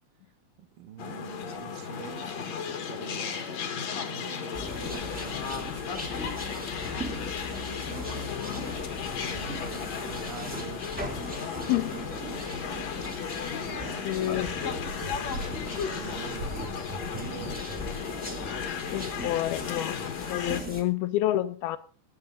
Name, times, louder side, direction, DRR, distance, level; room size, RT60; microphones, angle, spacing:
voice 1, 0.6-6.7 7.4-8.4 9.2-10.8 11.3-12.7 13.5-14.3 15.9-16.7 17.0-17.7, right 9 dB, 70° right, 2.9 m, -46 dB
sound 1, 1.0-20.6, left 7 dB, 55° left, 2.2 m, -35 dB
sound 2, 4.5-20.8, equal, 5° right, 1.8 m, -39 dB
voice 2, 11.3-12.0 14.0-14.6 18.9-20.0 20.3-21.8, left 14 dB, 80° left, 2.8 m, -29 dB
sound 3, 13.9-18.0, right 1 dB, 55° right, 5.5 m, -41 dB
21.0 x 9.8 x 3.8 m
omnidirectional pair, 4.4 m